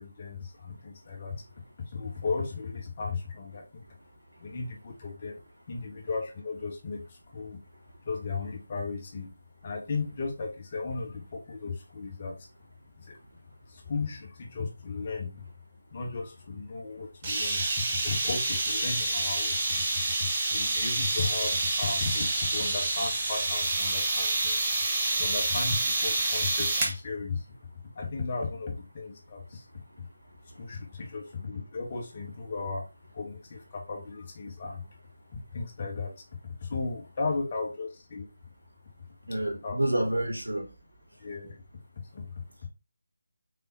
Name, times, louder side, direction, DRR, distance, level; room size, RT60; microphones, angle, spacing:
voice 1, 0.0-1.4 1.8-3.8 4.4-5.4 5.7-7.6 8.0-9.3 9.6-12.5 13.0-13.2 13.7-15.5 15.9-19.8 20.2-24.6 25.1-27.5 27.9-29.7 30.0-30.1 30.5-32.8 33.1-34.9 35.3-38.3 39.6-39.8 41.2-41.6 42.1-42.3 42.6-42.7, left 4 dB, 30° left, 1.1 m, -35 dB
sound 1, 17.2-27.0, right 2 dB, 20° right, 1.0 m, -28 dB
voice 2, 30.5-30.8 39.3-40.7, right 1 dB, 80° right, 2.5 m, -29 dB
4.1 x 3.7 x 2.7 m
figure-of-eight pair, 160°, 0 cm